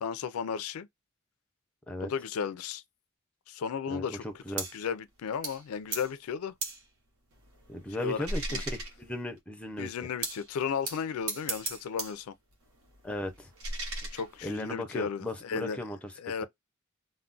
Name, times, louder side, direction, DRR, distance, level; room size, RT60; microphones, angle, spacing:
voice 1, 0.0-0.9 2.0-2.8 3.5-4.3 4.7-6.5 8.0-8.6 9.8-12.3 14.1-15.8 16.2-16.4, left 6 dB, 80° left, 0.3 m, -34 dB
voice 2, 3.9-4.7 7.7-9.9 13.0-13.5 14.4-16.1, left 1 dB, 5° left, 0.5 m, -36 dB
sound 1, 4.6-4.8 5.4-5.7 5.9-6.1 6.6-6.8 7.3-9.4 10.2-10.5 10.8-12.2 12.5-14.7, right 2 dB, 75° right, 0.9 m, -38 dB
2.3 x 2.1 x 3.7 m
head